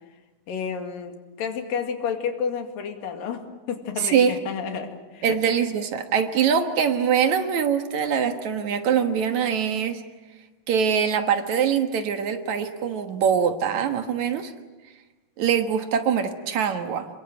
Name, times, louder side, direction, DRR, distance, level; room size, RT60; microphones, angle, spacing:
voice 1, 0.5-5.4, left 6 dB, 90° left, 5 dB, 3.9 m, -31 dB
voice 2, 4.0-4.4 5.2-10.0 10.7-14.5 15.4-17.1, right 7 dB, 65° right, 7 dB, 2.6 m, -23 dB
28.5 x 23.0 x 7.8 m, 1.2 s
omnidirectional pair, 3.9 m